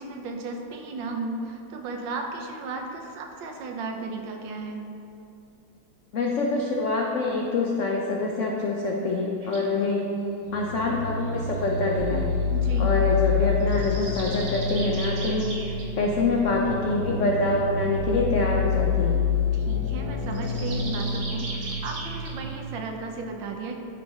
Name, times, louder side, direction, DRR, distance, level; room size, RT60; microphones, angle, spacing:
voice 1, 0.0-4.8 12.5-12.9 19.5-23.8, right 3 dB, 80° right, 2 dB, 1.4 m, -34 dB
voice 2, 6.1-10.1 10.5-12.4 12.8-15.5 16.0-19.3, left 3 dB, 85° left, -1 dB, 0.6 m, -25 dB
sound 1, 9.4-9.7 11.2-12.4 13.6-15.9 20.3-22.3, right 2 dB, 55° right, 1.4 m, -38 dB
sound 2, 10.4-22.4, left 5 dB, 35° right, 1.1 m, -28 dB
11.5 x 4.5 x 2.8 m, 2.8 s
omnidirectional pair, 2.1 m